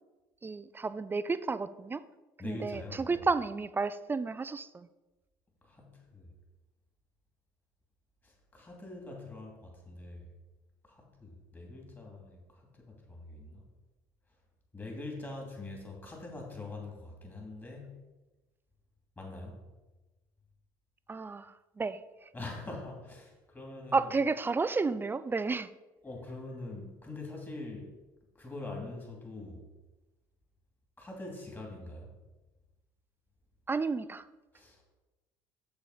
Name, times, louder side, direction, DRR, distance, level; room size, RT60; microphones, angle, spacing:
voice 1, 0.4-2.0 2.4-4.9 21.1-22.3 23.9-25.7 33.7-34.3, right 4 dB, 20° right, 14 dB, 0.4 m, -32 dB
voice 2, 2.4-3.2 5.6-6.3 8.2-10.3 10.8-13.7 14.7-18.0 19.2-19.6 22.3-24.1 26.0-27.9 28.3-29.6 31.0-32.1 34.5-34.8, left 2 dB, 20° left, 0 dB, 2.7 m, -44 dB
7.0 x 6.9 x 4.9 m, 1.1 s
supercardioid pair, 80°, 10 cm